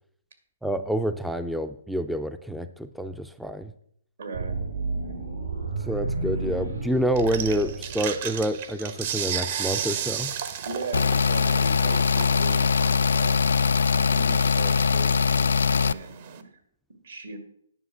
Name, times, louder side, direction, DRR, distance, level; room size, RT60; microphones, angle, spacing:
voice 1, 0.6-3.7 5.8-10.3, right 1 dB, ahead, 9 dB, 0.4 m, -28 dB
voice 2, 4.2-4.6 5.0-5.2 10.6-13.6 13.9-16.5 17.0-17.4, right 4 dB, 75° right, 7 dB, 2.2 m, -39 dB
sound 1, 4.3-8.6, right 3 dB, 90° right, 3.9 m, -31 dB
sound 2, 7.2-16.4, right 8 dB, 50° right, 0.9 m, -35 dB
sound 3, 10.9-15.9, left 5 dB, 75° left, 0.3 m, -22 dB
9.9 x 5.5 x 6.0 m, 0.67 s
hypercardioid pair, 140°, 0 cm